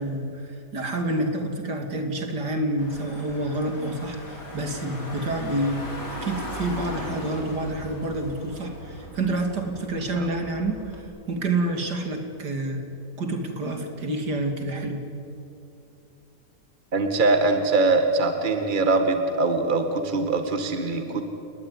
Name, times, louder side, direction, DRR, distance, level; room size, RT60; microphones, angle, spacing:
voice 1, 0.0-5.8 6.1-12.8 13.2-15.0, right 2 dB, 65° right, 4 dB, 3.5 m, -28 dB
Car / Engine, 2.8-11.0, left 1 dB, 65° left, 5.4 m, -38 dB
voice 2, 16.9-21.2, right 3 dB, 25° right, 6 dB, 2.0 m, -22 dB
29.5 x 20.5 x 9.8 m, 2.7 s
omnidirectional pair, 1.9 m